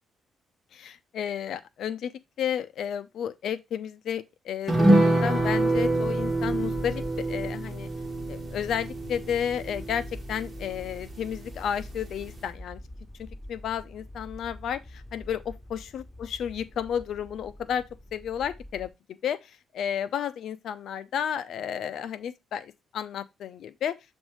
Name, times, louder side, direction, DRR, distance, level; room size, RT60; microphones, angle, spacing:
voice 1, 0.7-2.1 2.4-7.9 8.3-12.8 13.2-17.9 18.1-24.0, left 8 dB, 70° left, 0.6 m, -32 dB
sound 1, 4.7-11.5 11.8-11.9 12.2-12.4, right 1 dB, 25° right, 1.5 m, -26 dB
sound 2, 5.3-18.9, left 1 dB, 10° left, 3.1 m, -44 dB
7.2 x 2.7 x 4.8 m
cardioid pair, 90°, 0 cm